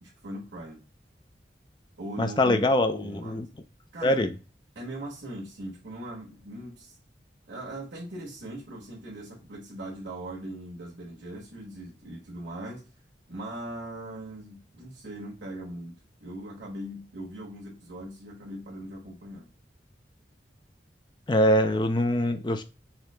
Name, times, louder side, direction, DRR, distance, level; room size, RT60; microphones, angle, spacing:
voice 1, 0.0-0.8 2.0-2.7 3.0-3.4 3.9-4.3 4.7-7.0 7.5-12.9 13.3-19.5, right 1 dB, 85° right, 1.3 m, -40 dB
voice 2, 2.2-3.5 4.0-4.3 21.3-22.6, left 1 dB, 25° left, 0.4 m, -23 dB
4.9 x 2.8 x 3.2 m
head